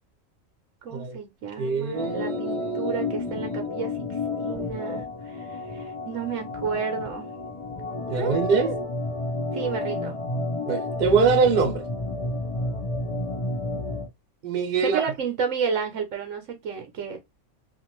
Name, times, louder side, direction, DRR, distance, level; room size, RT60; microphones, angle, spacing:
voice 1, 0.8-4.1 4.4-7.3 8.1-8.7 9.5-10.2 14.8-17.2, right 6 dB, 70° right, 1.0 m, -31 dB
voice 2, 1.6-3.5 8.1-8.7 10.6-11.8 14.4-15.0, right 5 dB, 50° right, 0.9 m, -24 dB
Organ, 1.9-14.1, left 2 dB, 40° left, 0.5 m, -31 dB
2.5 x 2.5 x 2.9 m
omnidirectional pair, 1.4 m